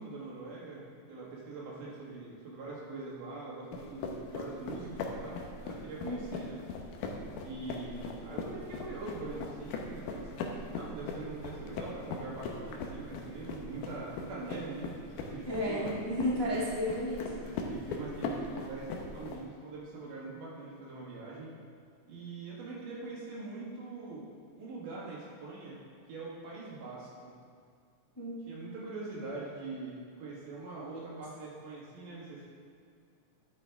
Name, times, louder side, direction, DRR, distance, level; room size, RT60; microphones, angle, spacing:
voice 1, 0.0-6.6 7.1-15.9 17.4-21.5 22.1-24.3 24.6-25.8 26.1-27.3 28.5-32.5, right 3 dB, 85° right, -5 dB, 3.3 m, -43 dB
sound 1, 3.7-19.4, left 4 dB, 80° left, 2.3 m, -40 dB
voice 2, 6.0-6.3 15.5-17.2 28.2-28.4, left 1 dB, 20° left, -7 dB, 0.6 m, -32 dB
11.5 x 7.8 x 3.5 m, 2.2 s
omnidirectional pair, 3.6 m